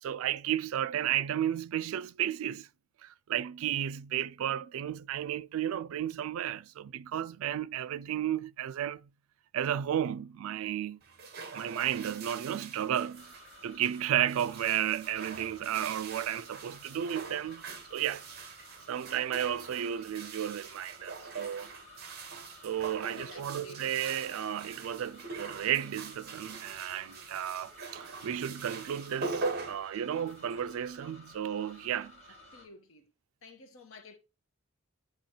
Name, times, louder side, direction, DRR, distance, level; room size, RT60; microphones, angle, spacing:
voice 1, 0.0-2.7 3.0-9.1 9.5-11.0 11.5-13.3 13.6-17.6 17.9-18.2 18.9-21.7 22.6-32.1, right 10 dB, 75° right, 0.3 m, -33 dB
sound 1, 11.0-30.6, right 4 dB, 45° right, 0.8 m, -43 dB
sound 2, 13.1-32.7, left 1 dB, 30° left, 1.4 m, -54 dB
voice 2, 23.1-23.8 27.1-27.3 32.5-33.1 33.4-34.2, left 3 dB, 70° left, 0.9 m, -52 dB
8.6 x 2.9 x 4.3 m
head